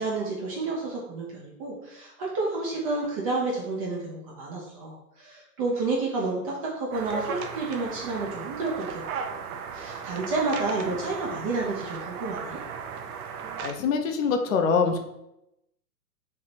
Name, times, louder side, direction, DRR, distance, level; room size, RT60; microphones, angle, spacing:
voice 1, 0.0-9.2 9.7-12.6, right 3 dB, 25° right, -2 dB, 0.4 m, -30 dB
sound 1, 6.9-13.7, right 6 dB, 60° right, 0.7 m, -36 dB
voice 2, 13.6-15.0, left 5 dB, 55° left, 5 dB, 0.7 m, -24 dB
3.3 x 2.8 x 4.2 m, 0.84 s
hypercardioid pair, 120°, 49 cm